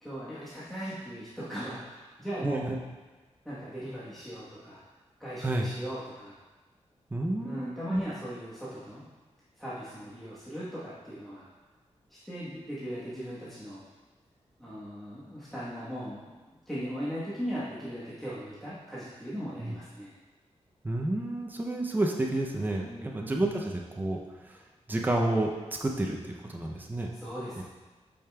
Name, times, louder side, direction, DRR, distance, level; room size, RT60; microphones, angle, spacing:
voice 1, 0.0-2.7 3.4-4.8 5.2-6.4 7.4-9.0 9.6-11.5 12.1-13.8 14.6-20.1 22.8-23.1 27.1-27.6, equal, ahead, -10 dB, 1.2 m, -38 dB
voice 2, 2.3-2.8 5.4-5.7 7.1-8.0 19.6-19.7 20.8-24.6 24.9-25.5 25.8-27.1 27.6-27.7, right 1 dB, 15° right, 0 dB, 0.6 m, -30 dB
8.6 x 5.1 x 2.3 m, 1.3 s
wide cardioid pair, 100°, 12 cm